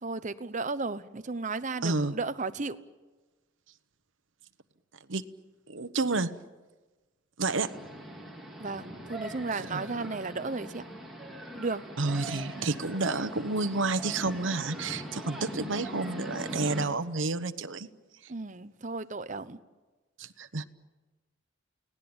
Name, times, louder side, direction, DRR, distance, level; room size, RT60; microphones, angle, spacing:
voice 1, 0.0-2.8 8.6-10.8 11.5-11.8 12.6-12.7 18.3-19.6, right 3 dB, 40° right, 12 dB, 0.9 m, -34 dB
voice 2, 1.8-2.2 5.1-5.2 5.7-6.4 7.4-7.8 9.5-9.8 12.0-17.9 18.2-18.3 20.2-20.7, right 3 dB, 80° right, 10 dB, 1.0 m, -30 dB
sound 1, 7.5-16.9, equal, ahead, 4.0 m, -41 dB
30.0 x 18.5 x 8.9 m, 1.3 s
head